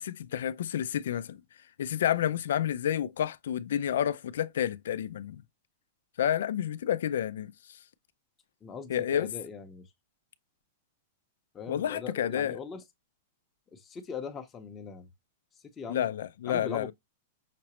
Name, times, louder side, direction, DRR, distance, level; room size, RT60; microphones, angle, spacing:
voice 1, 0.0-1.4 1.8-5.4 6.2-7.8 8.9-9.3 11.7-12.6 15.9-16.9, left 10 dB, 80° left, 0.3 m, -30 dB
voice 2, 8.6-9.8 11.5-12.8 13.7-15.1 15.8-16.1 16.5-16.9, left 5 dB, 15° left, 0.7 m, -40 dB
5.8 x 2.0 x 2.9 m
supercardioid pair, 155°, 0 cm